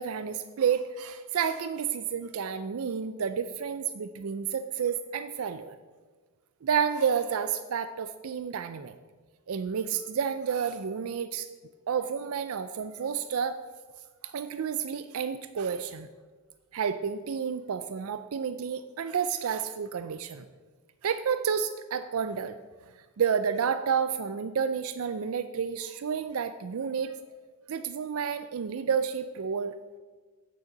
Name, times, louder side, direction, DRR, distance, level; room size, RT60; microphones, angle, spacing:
voice 1, 0.0-5.8 6.6-9.0 9.5-11.5 11.9-13.6 14.2-16.1 16.7-20.5 21.0-22.6 23.2-27.1 27.7-29.7, right 7 dB, 70° right, 11 dB, 0.4 m, -30 dB
8.5 x 6.7 x 7.6 m, 1.4 s
head